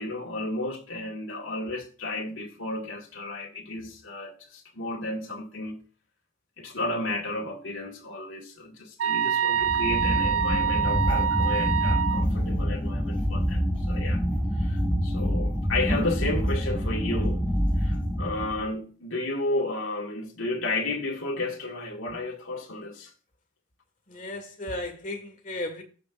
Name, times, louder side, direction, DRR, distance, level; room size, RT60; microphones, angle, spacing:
voice 1, 0.0-5.8 6.6-13.6 13.9-14.2 14.6-17.4 17.8-23.1, left 2 dB, 90° left, 1.9 m, -32 dB
sound 1, 9.0-12.3, right 8 dB, 80° right, 0.3 m, -25 dB
sound 2, 9.6-18.7, equal, 5° left, 1.9 m, -26 dB
voice 2, 24.1-25.8, left 1 dB, 40° left, 1.7 m, -35 dB
15.0 x 5.4 x 2.5 m
head